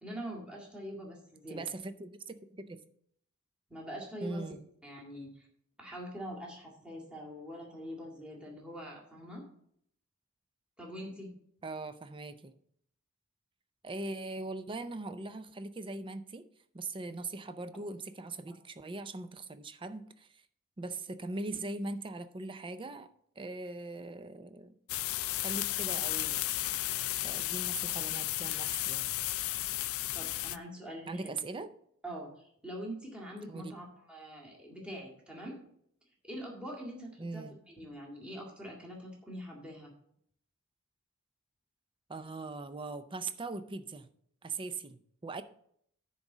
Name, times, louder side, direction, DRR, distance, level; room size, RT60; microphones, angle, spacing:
voice 1, 0.0-1.6 3.7-4.5 4.8-5.5 5.8-9.5 10.8-11.3 30.1-31.3 32.0-35.6 36.2-39.9, equal, 5° right, -3 dB, 2.0 m, -44 dB
voice 2, 1.5-2.8 4.2-4.6 11.6-12.6 13.8-16.4 16.7-20.4 20.8-23.1 23.4-24.8 25.4-26.4 27.2-29.1 31.1-31.7 33.5-33.7 37.2-37.6 42.1-44.1 44.4-45.4, right 3 dB, 25° right, 11 dB, 0.5 m, -40 dB
sound 1, 24.9-30.6, left 16 dB, 75° left, 0.4 m, -33 dB
10.0 x 3.9 x 7.2 m, 0.68 s
head